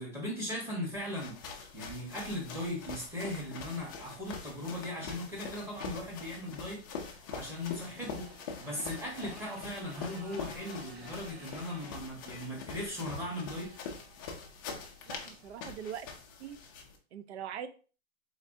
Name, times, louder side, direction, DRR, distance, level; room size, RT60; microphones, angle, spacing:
voice 1, 0.0-13.7, left 1 dB, 5° right, -4 dB, 1.2 m, -38 dB
sound 1, 0.9-17.0, left 5 dB, 20° left, 0.3 m, -44 dB
Motorcycle, 6.6-15.9, right 2 dB, 55° right, 1.9 m, -55 dB
voice 2, 15.1-16.1 16.4-16.6 17.1-17.7, right 9 dB, 75° right, 11 dB, 0.6 m, -41 dB
3.9 x 3.2 x 2.6 m, 0.38 s
hypercardioid pair, 155°, 33 cm